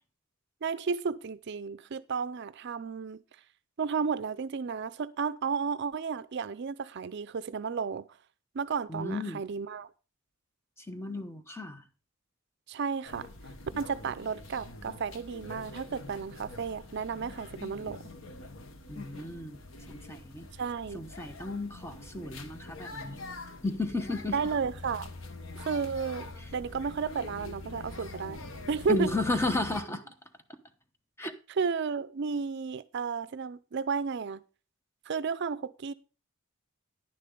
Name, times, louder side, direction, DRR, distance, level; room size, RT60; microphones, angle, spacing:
voice 1, 0.6-3.2 3.8-8.1 8.5-9.9 12.7-13.3 13.8-18.0 20.6-21.0 24.3-25.1 25.6-26.3 26.5-28.4 28.7-29.1 31.5-34.4 35.1-35.9, right 5 dB, 55° right, 0.4 m, -33 dB
voice 2, 8.9-9.4 10.9-11.8 18.9-19.6 19.9-20.5 20.9-23.2 23.6-24.4 28.9-30.0 31.2-31.3, left 2 dB, 15° left, 1.0 m, -33 dB
sound 1, 13.1-29.8, left 2 dB, 80° left, 1.2 m, -45 dB
11.0 x 10.0 x 3.8 m
head